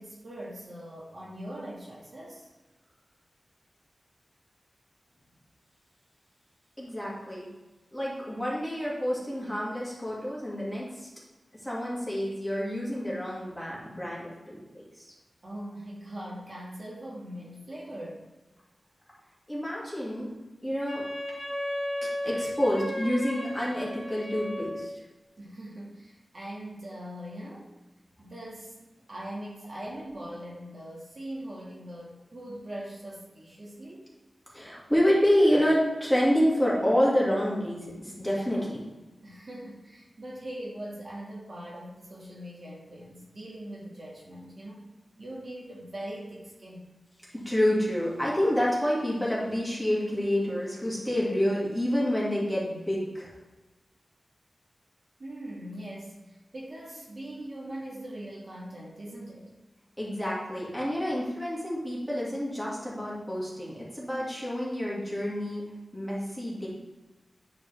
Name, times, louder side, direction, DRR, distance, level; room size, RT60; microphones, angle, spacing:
voice 1, 0.0-2.5 15.4-18.2 25.4-27.7 28.2-28.8 29.1-34.1 39.2-44.8 45.2-46.9 55.2-59.5, right 1 dB, 55° right, -5 dB, 1.7 m, -41 dB
voice 2, 6.8-7.5 7.9-11.1 11.6-14.8 19.5-20.3 20.6-21.1 22.2-24.9 34.5-38.8 47.3-53.3 60.0-65.6 65.9-66.7, equal, 5° left, -6 dB, 2.2 m, -28 dB
Wind instrument woodwind instrument, 20.9-25.0, left 1 dB, 35° left, 1.7 m, -35 dB
9.7 x 4.0 x 3.4 m, 1.1 s
wide cardioid pair, 100°, 0 cm